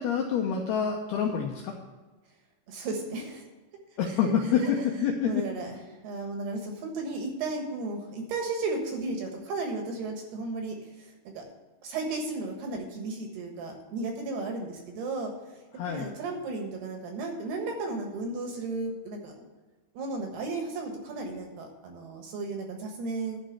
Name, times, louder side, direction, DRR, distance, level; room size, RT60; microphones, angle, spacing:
voice 1, 0.0-1.7 4.0-5.4 15.8-16.1, left 7 dB, 85° left, 1 dB, 2.3 m, -27 dB
voice 2, 2.7-3.5 4.1-4.3 4.6-4.9 5.2-5.8 6.0-11.4 11.8-15.3 15.9-19.4 19.9-23.4, right 3 dB, 65° right, 2 dB, 3.1 m, -34 dB
11.0 x 5.3 x 8.6 m, 1.2 s
omnidirectional pair, 5.6 m